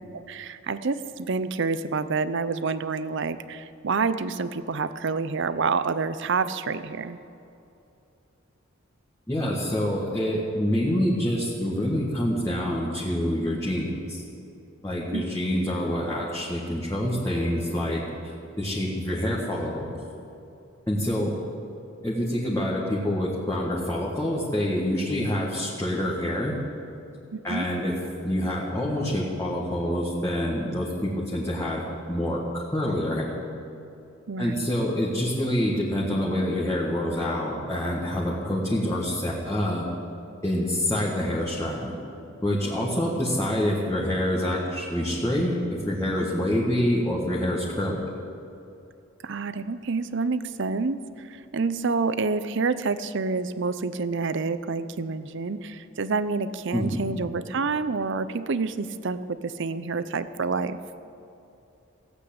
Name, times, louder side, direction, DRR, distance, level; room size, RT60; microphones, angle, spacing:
voice 1, 0.1-7.2 15.1-15.3 27.3-27.7 34.3-34.6 49.2-60.8, right 4 dB, 60° right, 13 dB, 0.6 m, -28 dB
voice 2, 9.3-14.2 14.8-18.0 18.6-20.0 20.9-21.4 22.0-26.6 27.4-27.9 28.2-31.8 32.1-33.4 34.4-39.8 40.4-41.9 42.4-48.1 56.7-57.0, left 1 dB, 15° left, -6 dB, 1.7 m, -26 dB
16.5 x 8.4 x 8.7 m, 2.8 s
head